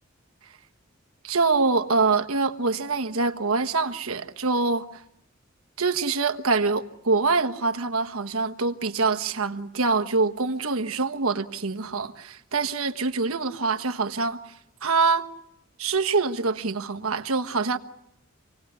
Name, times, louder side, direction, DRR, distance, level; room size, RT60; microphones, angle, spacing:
voice 1, 1.2-5.0 5.8-14.4 14.8-15.2 15.8-17.8, right 4 dB, 80° right, 1.3 m, -25 dB
27.0 x 19.0 x 9.6 m
head